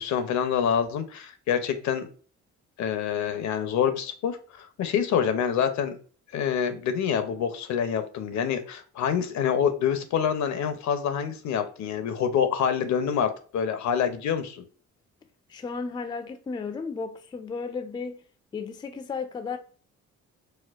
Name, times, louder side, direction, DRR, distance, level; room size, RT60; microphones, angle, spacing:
voice 1, 0.0-2.1 2.8-6.0 6.3-14.6, left 8 dB, 70° left, 0.6 m, -26 dB
voice 2, 15.5-18.2 18.5-19.6, left 5 dB, 15° left, 0.3 m, -34 dB
4.2 x 2.1 x 2.4 m
cardioid pair, 90°, 30 cm